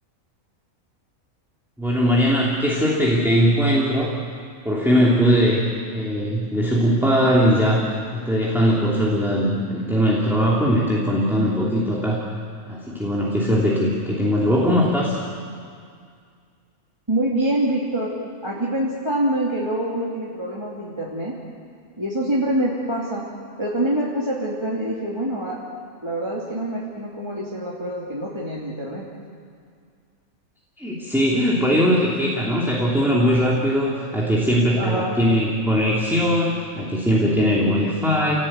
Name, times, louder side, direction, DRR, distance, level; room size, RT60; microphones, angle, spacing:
voice 1, 1.8-4.1 4.6-5.6 5.9-12.3 12.7-15.2 30.8-38.5, equal, ahead, -5 dB, 3.1 m, -20 dB
voice 2, 17.1-18.1 18.4-21.4 22.0-23.3 23.6-25.6 26.0-29.1 34.8-35.2, right 1 dB, 20° right, -5 dB, 2.9 m, -25 dB
29.5 x 18.0 x 8.9 m, 2.2 s
omnidirectional pair, 1.5 m